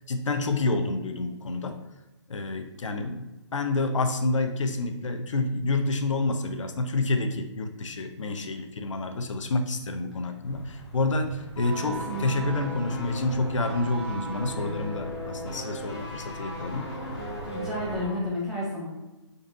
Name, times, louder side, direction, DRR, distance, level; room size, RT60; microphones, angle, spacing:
voice 1, 0.1-1.8 2.3-3.3 3.5-16.9, left 2 dB, 85° left, 7 dB, 0.6 m, -28 dB
sound 1, 10.4-18.1, right 1 dB, 60° left, 0.9 m, -43 dB
sound 2, 11.6-18.2 18.5-18.7, equal, 15° left, 0.9 m, -36 dB
voice 2, 11.9-12.5 17.5-18.9, left 1 dB, ahead, -8 dB, 0.5 m, -32 dB
3.9 x 2.5 x 3.8 m, 1.0 s
hypercardioid pair, 165°, 16 cm